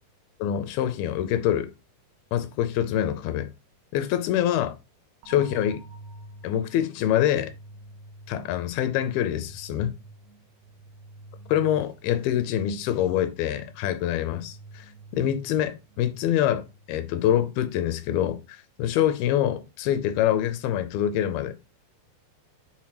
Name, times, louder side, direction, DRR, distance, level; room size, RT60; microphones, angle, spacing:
voice 1, 0.4-1.7 2.3-3.5 3.9-4.8 5.3-5.8 6.4-7.5 8.3-10.0 11.5-14.9 15.1-21.6, left 11 dB, 80° left, 2.3 m, -25 dB
sound 1, 5.2-17.2, right 2 dB, 85° right, 2.8 m, -48 dB
7.4 x 4.4 x 3.0 m
omnidirectional pair, 4.5 m